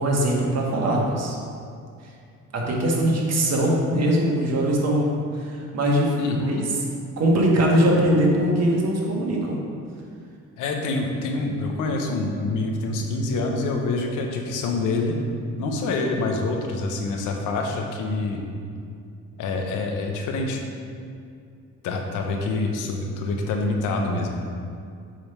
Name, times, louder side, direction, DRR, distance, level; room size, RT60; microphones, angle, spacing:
voice 1, 0.0-1.4 2.0-2.1 2.5-5.1 5.3-6.7 7.2-9.6, right 1 dB, 60° right, -2 dB, 1.5 m, -21 dB
voice 2, 6.2-6.6 10.6-15.2 15.6-18.4 19.4-20.6 21.8-24.3, left 3 dB, 90° left, 2 dB, 0.9 m, -26 dB
7.6 x 3.5 x 5.6 m, 2.4 s
cardioid pair, 90°, 30 cm